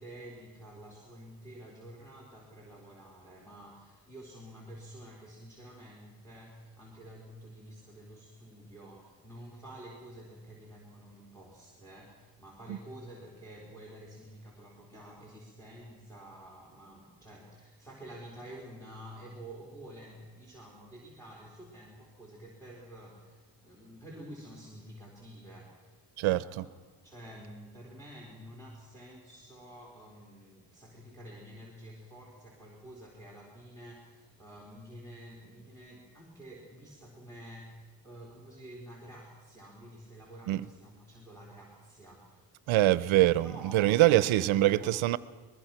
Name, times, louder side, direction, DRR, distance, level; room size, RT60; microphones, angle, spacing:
voice 1, 0.0-26.0 26.3-26.7 27.0-42.4 43.4-45.0, right 1 dB, 5° left, 4.3 m, -49 dB
voice 2, 26.2-26.7 40.5-40.6 42.7-45.2, right 15 dB, 85° right, 0.9 m, -24 dB
23.0 x 21.5 x 6.0 m
cardioid pair, 125°, 47 cm